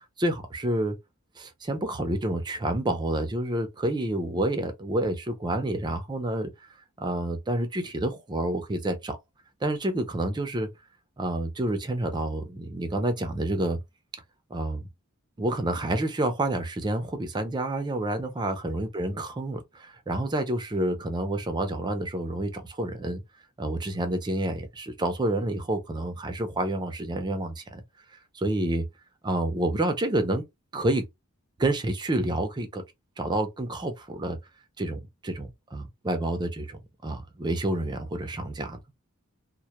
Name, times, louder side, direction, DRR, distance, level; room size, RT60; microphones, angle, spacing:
voice 1, 0.2-1.0 1.4-6.5 7.0-9.2 9.6-10.7 11.2-13.8 14.5-14.8 15.4-23.2 23.6-27.8 28.3-28.8 29.2-30.4 30.7-31.1 31.6-32.8 33.2-34.4 34.8-38.8, right 1 dB, 20° right, 0.4 m, -29 dB
2.1 x 2.1 x 2.8 m
head